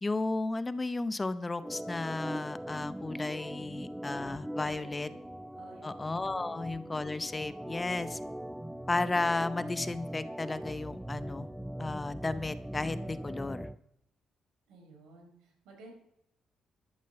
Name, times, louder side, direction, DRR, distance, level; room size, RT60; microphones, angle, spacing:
voice 1, 0.0-5.1 5.8-8.2 8.9-11.5 11.8-13.7, left 3 dB, 20° left, 14 dB, 0.7 m, -34 dB
Organ, 1.6-13.8, right 1 dB, 5° right, 0.3 m, -41 dB
voice 2, 4.6-5.1 5.5-5.9 6.3-6.5 14.7-15.9, right 3 dB, 85° right, 1 dB, 4.4 m, -53 dB
12.5 x 7.5 x 6.8 m, 0.81 s
cardioid pair, 90°, 0 cm